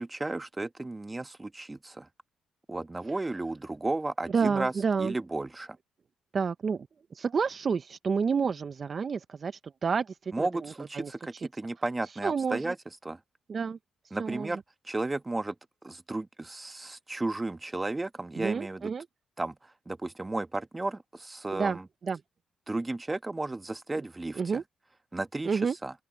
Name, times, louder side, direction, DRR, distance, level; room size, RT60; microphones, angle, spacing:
voice 1, 0.0-2.1 2.7-4.7 5.0-5.8 10.3-12.8 13.0-13.2 14.1-14.6 14.9-15.5 15.8-18.9 19.4-19.5 19.9-21.8 22.7-24.4 25.1-25.9, right 2 dB, 15° right, 1.3 m, -33 dB
voice 2, 4.3-5.1 6.3-11.5 12.2-12.7 13.5-13.8 14.2-14.6 18.3-19.1 21.5-22.2 24.4-24.6 25.4-25.8, right 5 dB, 40° right, 0.7 m, -30 dB
open air
cardioid pair, 90°, 0 cm